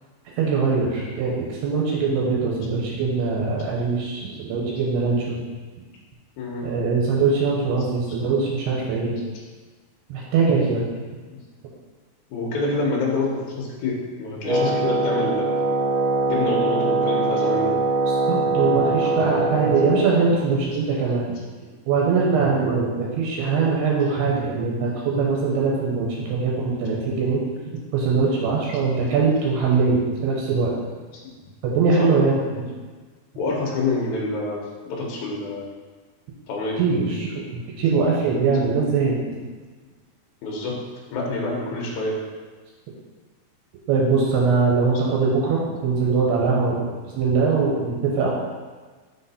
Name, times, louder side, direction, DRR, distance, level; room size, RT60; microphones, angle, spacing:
voice 1, 0.4-5.4 6.6-9.2 10.1-10.8 18.3-21.3 21.9-27.4 27.7-30.7 31.6-32.4 36.8-39.2 43.9-46.9 47.1-48.3, right 4 dB, 85° right, -3 dB, 2.8 m, -22 dB
voice 2, 6.4-6.7 7.9-8.0 12.3-13.9 14.2-15.5 16.3-17.7 19.4-19.6 22.5-22.8 24.0-24.1 28.7-28.8 31.9-32.1 33.4-34.6 34.9-35.7 36.5-36.8 40.4-40.8 41.1-42.2, left 3 dB, 90° left, -2 dB, 1.6 m, -27 dB
Wind instrument woodwind instrument, 14.4-20.1, right 3 dB, 55° right, 2.6 m, -22 dB
5.7 x 4.1 x 4.1 m, 1.4 s
omnidirectional pair, 4.8 m